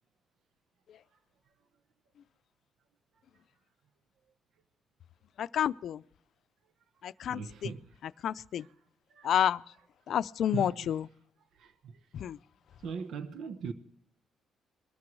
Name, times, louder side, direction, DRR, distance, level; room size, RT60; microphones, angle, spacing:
voice 1, 5.4-6.0 7.0-7.7 8.0-8.7 9.2-9.6 10.1-11.1 12.1-12.4, left 10 dB, 65° left, 0.5 m, -30 dB
voice 2, 7.3-8.2 8.6-8.7 9.1-9.3 10.5-10.9 11.5-12.1 12.8-13.7, right 6 dB, 70° right, 1.0 m, -40 dB
22.5 x 13.0 x 3.2 m
cardioid pair, 90°, 0 cm